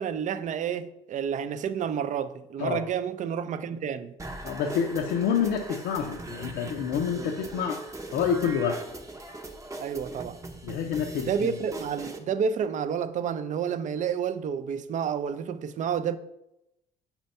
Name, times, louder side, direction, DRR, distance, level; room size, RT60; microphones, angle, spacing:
voice 1, 0.0-4.1 9.8-10.4 11.2-16.2, right 7 dB, 50° right, 0.5 m, -30 dB
sound 1, 4.2-12.2, right 2 dB, 20° right, 0.8 m, -40 dB
voice 2, 4.4-7.8 8.1-8.8 10.6-11.5, left 7 dB, 85° left, 0.6 m, -28 dB
4.5 x 4.5 x 5.3 m
cardioid pair, 110°, 17 cm